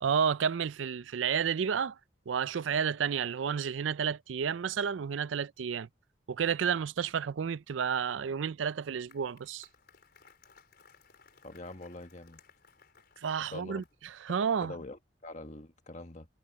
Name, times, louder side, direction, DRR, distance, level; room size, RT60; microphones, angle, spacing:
voice 1, 0.0-2.0 2.3-5.9 6.3-9.7 13.2-14.8, right 7 dB, 85° right, 0.4 m, -31 dB
Applause, 8.7-14.1, left 6 dB, 55° left, 5.3 m, -61 dB
voice 2, 11.4-12.4 13.5-13.9 14.3-16.3, left 2 dB, 40° left, 1.7 m, -45 dB
head